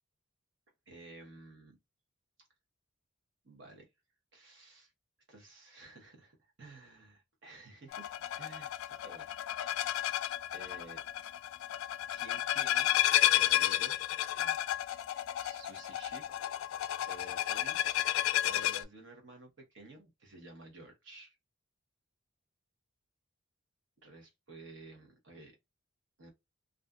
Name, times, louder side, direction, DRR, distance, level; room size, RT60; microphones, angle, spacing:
voice 1, 0.9-1.8 3.4-3.9 4.3-4.9 5.3-8.1 8.4-10.0 10.5-11.0 12.1-12.9 13.3-14.1 14.4-14.6 15.4-16.2 17.1-17.8 18.4-21.4 24.0-25.6 26.2-26.3, right 2 dB, 60° right, 0.9 m, -53 dB
sound 1, 7.9-18.8, left 12 dB, 85° left, 0.3 m, -32 dB
2.5 x 2.4 x 2.3 m
head